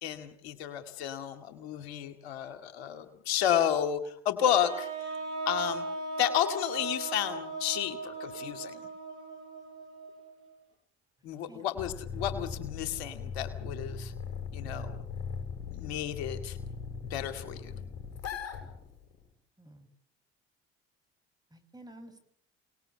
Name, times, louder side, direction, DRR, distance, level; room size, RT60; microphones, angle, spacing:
voice 1, 0.0-5.1 5.5-5.9 6.2-8.8 11.2-14.1 14.5-15.0 15.7-16.6 17.1-17.7, left 10 dB, 80° left, 9 dB, 2.1 m, -32 dB
sound 1, 4.4-10.5, right 3 dB, 70° right, 7.6 m, -38 dB
sound 2, 11.8-19.3, left 5 dB, 50° left, 7.6 m, -39 dB
voice 2, 19.6-19.9 21.5-22.2, right 1 dB, 10° right, 8 dB, 7.1 m, -51 dB
28.5 x 19.0 x 8.8 m, 0.66 s
hypercardioid pair, 55°, 31 cm